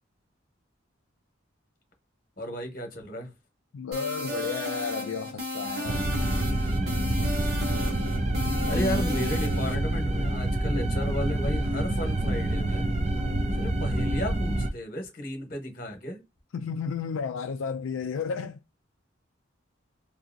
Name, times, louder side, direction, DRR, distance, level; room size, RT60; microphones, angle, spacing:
voice 1, 2.4-3.3 7.7-8.1 8.4-12.9 13.6-16.2, left 1 dB, 45° left, 1.0 m, -34 dB
voice 2, 3.7-6.1 13.1-13.6 16.5-18.6, left 6 dB, 80° left, 0.4 m, -33 dB
sound 1, 3.9-9.7, left 1 dB, 50° right, 1.1 m, -34 dB
sound 2, 5.9-14.7, right 1 dB, 30° right, 0.5 m, -27 dB
2.7 x 2.7 x 2.5 m
head